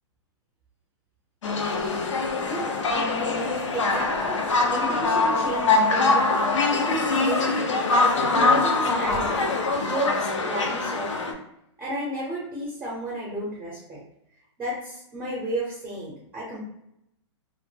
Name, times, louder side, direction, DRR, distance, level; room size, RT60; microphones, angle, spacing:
sound 1, 1.4-11.3, left 3 dB, 90° left, 0.5 m, -23 dB
voice 1, 2.4-11.4 11.8-14.0 14.6-16.6, right 1 dB, 15° right, -6 dB, 0.6 m, -33 dB
2.0 x 2.0 x 3.2 m, 0.79 s
hypercardioid pair, 145°, 15 cm